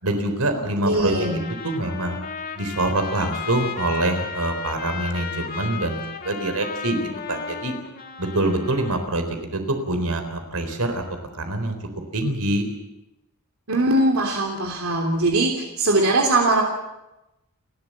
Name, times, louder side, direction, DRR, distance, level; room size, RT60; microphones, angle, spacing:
voice 1, 0.0-1.2 1.6-2.2 2.5-7.7 8.2-11.0 11.3-11.8 12.1-12.6, right 1 dB, 90° right, 7 dB, 4.0 m, -25 dB
voice 2, 0.8-1.4 13.7-16.6, right 2 dB, 70° right, 1 dB, 3.0 m, -21 dB
Trumpet, 0.9-9.1, left 6 dB, 45° left, 2.2 m, -35 dB
30.0 x 13.0 x 7.8 m, 0.95 s
head